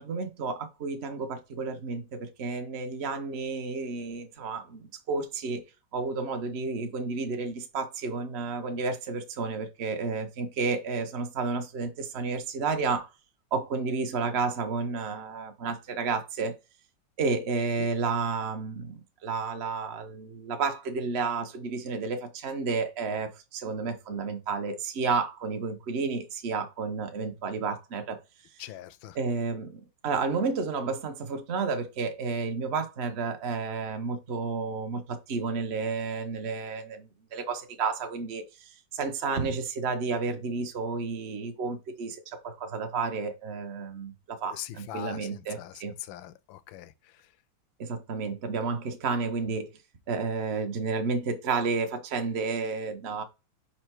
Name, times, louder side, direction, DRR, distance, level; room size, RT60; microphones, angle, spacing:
voice 1, 0.0-5.6 5.9-13.1 13.5-16.5 17.2-28.2 29.1-45.9 47.8-49.7 50.1-53.2, right 4 dB, 50° right, 0.8 m, -31 dB
voice 2, 28.6-29.2 44.5-47.3, left 12 dB, 85° left, 1.3 m, -42 dB
5.4 x 4.4 x 4.5 m
omnidirectional pair, 2.1 m